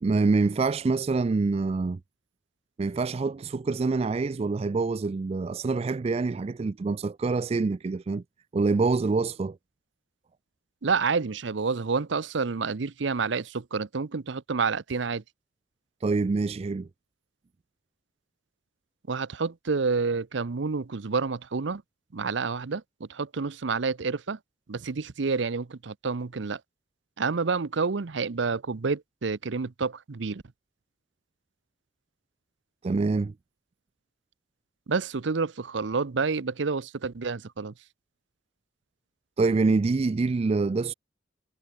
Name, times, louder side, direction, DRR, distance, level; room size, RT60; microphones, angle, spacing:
voice 1, 0.0-2.0 2.8-8.2 8.5-9.6 16.0-16.9 32.8-33.3 39.4-40.9, right 3 dB, 30° right, 0.3 m, -26 dB
voice 2, 10.8-15.2 19.1-21.8 22.1-24.4 24.7-26.6 27.2-30.4 34.9-37.7, right 4 dB, 70° right, 0.7 m, -29 dB
head